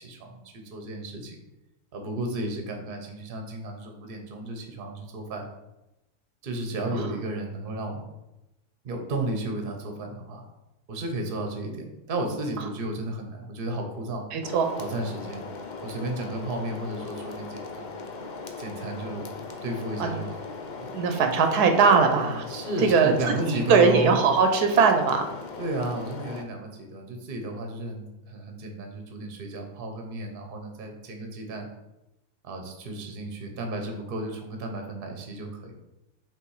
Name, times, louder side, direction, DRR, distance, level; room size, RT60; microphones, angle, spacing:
voice 1, 0.0-1.4 1.9-5.5 6.4-8.0 8.8-10.4 10.9-14.2 14.8-15.4 15.8-17.9 18.6-19.3 19.6-20.4 20.7-20.9 22.5-24.2 25.6-31.7 32.4-35.7, right 1 dB, 40° right, 4 dB, 1.0 m, -33 dB
voice 2, 14.3-14.7 20.0-20.2 20.9-22.5 22.8-23.1 23.4-25.3, right 5 dB, 80° right, 5 dB, 1.3 m, -20 dB
sound 1, 14.4-26.4, left 4 dB, 80° left, 0.4 m, -38 dB
5.9 x 3.6 x 4.8 m, 0.94 s
omnidirectional pair, 1.7 m